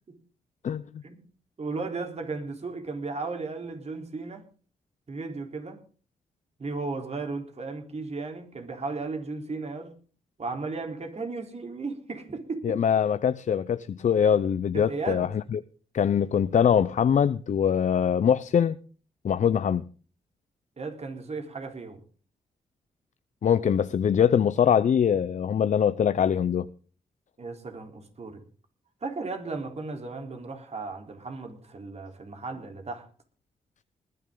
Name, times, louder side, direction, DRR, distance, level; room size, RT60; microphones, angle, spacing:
voice 1, 1.6-4.4 5.1-5.8 6.6-10.0 10.4-12.8 14.7-15.3 20.8-22.0 27.4-28.4 29.0-33.0, right 3 dB, 50° right, 3.8 m, -35 dB
voice 2, 12.6-15.6 15.9-18.8 19.2-19.8 23.4-26.7, left 8 dB, 60° left, 0.6 m, -23 dB
20.0 x 10.5 x 3.9 m
cardioid pair, 55°, 14 cm